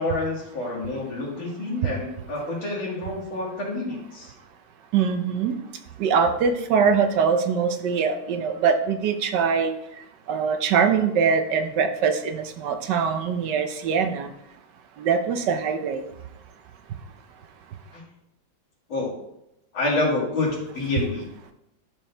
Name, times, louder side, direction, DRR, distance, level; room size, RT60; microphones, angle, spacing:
voice 1, 0.0-4.3 17.9-18.0 18.9-19.1 19.7-21.3, left 2 dB, 85° left, -3 dB, 3.0 m, -28 dB
voice 2, 4.9-5.6 6.0-9.7 10.3-14.3 15.0-16.0, right 6 dB, 70° right, 7 dB, 1.2 m, -23 dB
11.5 x 4.5 x 3.3 m, 0.81 s
omnidirectional pair, 2.1 m